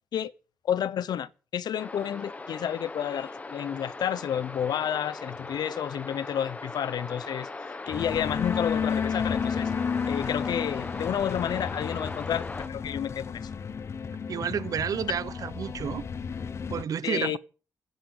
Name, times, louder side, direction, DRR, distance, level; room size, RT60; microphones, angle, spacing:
voice 1, 0.6-7.5 7.9-9.7 10.1-13.5 17.0-17.4, left 9 dB, 80° left, 0.9 m, -30 dB
sound 1, 1.8-12.7, left 3 dB, 20° left, 1.4 m, -39 dB
sound 2, 7.9-16.8, left 6 dB, 40° left, 0.9 m, -32 dB
voice 2, 14.3-16.1 16.7-17.4, right 8 dB, 60° right, 0.8 m, -30 dB
15.0 x 10.5 x 8.3 m
wide cardioid pair, 170°, 7 cm